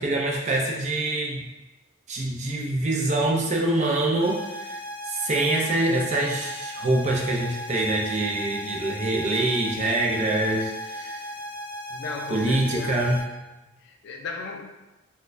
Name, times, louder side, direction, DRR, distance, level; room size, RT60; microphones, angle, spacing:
voice 1, 0.0-1.5 2.1-4.8 5.1-11.3 12.3-13.2, right 2 dB, 35° right, -1 dB, 0.4 m, -25 dB
sound 1, 4.2-13.2, left 1 dB, 20° left, 1.3 m, -37 dB
voice 2, 11.9-13.1 13.7-14.6, left 4 dB, 55° left, 2 dB, 0.4 m, -36 dB
4.1 x 2.2 x 2.5 m, 1.0 s
head